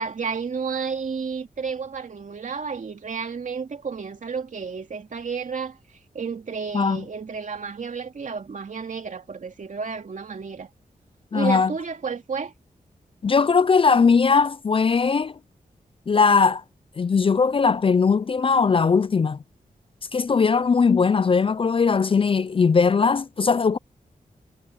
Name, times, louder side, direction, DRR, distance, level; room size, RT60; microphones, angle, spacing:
voice 1, 0.0-5.8 6.1-10.7 11.3-12.5, right 5 dB, 60° right, 2.6 m, -31 dB
voice 2, 11.3-11.7 13.2-15.3 16.1-16.6 17.0-19.4 20.1-23.8, left 5 dB, 35° left, 0.4 m, -19 dB
wide cardioid pair, 95°, 15 cm